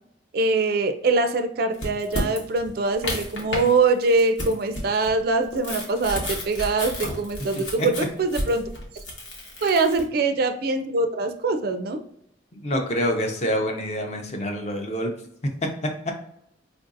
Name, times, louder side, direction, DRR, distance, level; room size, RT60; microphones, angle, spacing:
voice 1, 0.3-8.7 9.6-12.0, right 3 dB, 50° right, 8 dB, 0.3 m, -23 dB
sound 1, 1.7-3.7 4.0-10.0, left 1 dB, 85° left, 1.1 m, -32 dB
voice 2, 7.6-7.9 9.6-9.7 12.5-15.1, equal, 35° left, 3 dB, 0.6 m, -27 dB
4.5 x 2.5 x 2.5 m, 0.70 s
head